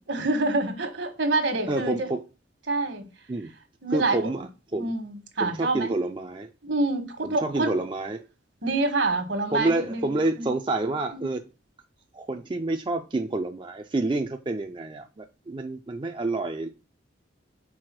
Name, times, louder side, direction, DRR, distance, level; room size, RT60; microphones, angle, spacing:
voice 1, 0.1-2.1 2.7-3.0 3.8-4.3 4.7-5.9 6.6-7.8 8.6-10.5 11.1-11.3, right 2 dB, 70° right, 1.4 m, -27 dB
voice 2, 1.7-2.2 3.3-3.5 3.9-4.5 4.7-4.9 5.4-6.5 7.2-8.2 9.5-11.4 12.1-16.7, right 2 dB, 25° right, 0.4 m, -28 dB
4.8 x 4.5 x 5.9 m
head